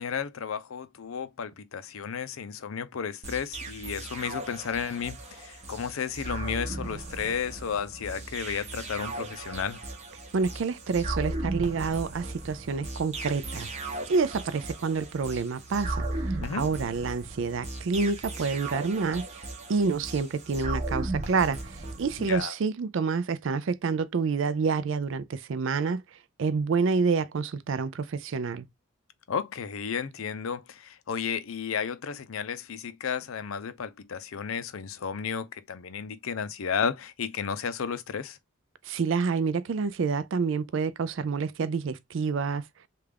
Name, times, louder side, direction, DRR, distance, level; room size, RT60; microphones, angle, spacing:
voice 1, 0.0-9.8 16.4-16.6 22.2-22.5 29.3-38.4, left 6 dB, 80° left, 0.5 m, -33 dB
sound 1, 3.2-22.4, right 2 dB, 30° right, 0.8 m, -36 dB
voice 2, 10.3-13.7 14.1-19.3 19.7-26.0 26.4-28.7 38.8-42.6, right 4 dB, 65° right, 0.4 m, -28 dB
3.4 x 2.4 x 3.3 m
head